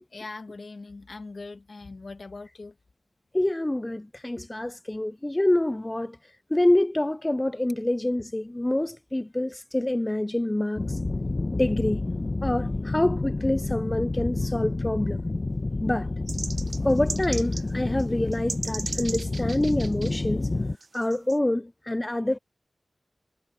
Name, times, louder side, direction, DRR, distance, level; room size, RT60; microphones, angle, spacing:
voice 1, 0.1-2.7, left 3 dB, 60° left, 1.1 m, -41 dB
voice 2, 3.3-6.2 6.5-11.0 11.5-12.0 12.4-15.2 15.8-16.1 16.8-20.4 20.9-22.4, left 1 dB, 20° left, 0.3 m, -26 dB
sound 1, 10.8-20.8, left 2 dB, 40° left, 0.9 m, -29 dB
sound 2, 16.3-17.7 18.0-18.1 18.3-20.1 20.8-21.4, right 3 dB, 65° right, 0.8 m, -36 dB
wide cardioid pair, 80°, 0 cm